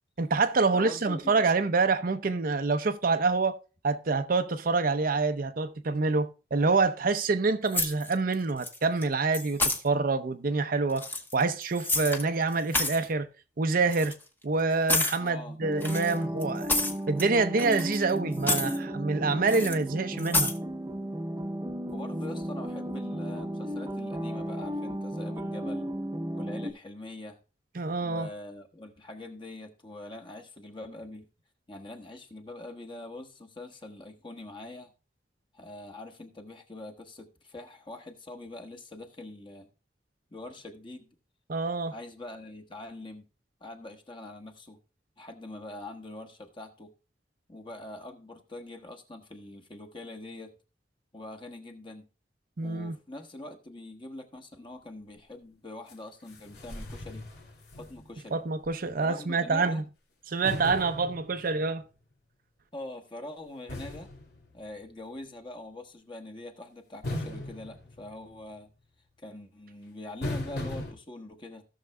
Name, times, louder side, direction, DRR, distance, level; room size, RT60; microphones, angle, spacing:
voice 1, 0.2-3.5 3.8-11.0 11.3-13.3 13.6-14.1 14.4-16.7 17.1-20.5 27.8-28.3 41.5-41.9 52.6-53.0 58.3-59.8 60.3-61.8, right 3 dB, 55° right, 0.6 m, -26 dB
voice 2, 0.7-1.4 15.2-15.6 21.9-25.9 26.3-27.4 28.0-31.2 31.7-34.9 35.5-39.7 40.3-41.1 41.9-43.3 43.6-44.8 45.2-46.9 47.5-50.5 51.1-52.1 52.6-57.3 57.7-58.4 59.0-59.9 62.7-64.1 64.5-68.7 69.2-71.6, left 2 dB, 30° left, 1.2 m, -43 dB
sound 1, 7.7-8.3 8.6-9.0 9.3-9.8 10.9-12.2 12.5-13.1 13.9-14.1 14.9-15.2 15.8-17.3 17.6-18.1 18.4-18.8 19.5-19.8 20.2-20.6, left 2 dB, 10° left, 1.0 m, -29 dB
sound 2, 15.6-26.7, equal, 20° right, 0.8 m, -34 dB
sound 3, 55.9-56.0 56.3-58.3 58.6-58.7 60.4-61.8 63.7-65.1 67.0-68.6 70.2-70.9, left 1 dB, 65° left, 2.5 m, -38 dB
17.0 x 6.5 x 2.2 m
head